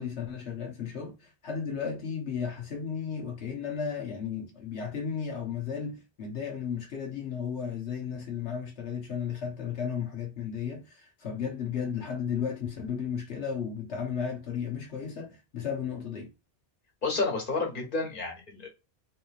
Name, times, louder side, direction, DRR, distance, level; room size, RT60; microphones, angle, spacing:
voice 1, 0.0-16.3, left 7 dB, 90° left, 1.3 m, -34 dB
voice 2, 17.0-18.7, left 3 dB, 50° left, 1.6 m, -30 dB
3.9 x 3.1 x 2.4 m
omnidirectional pair, 1.1 m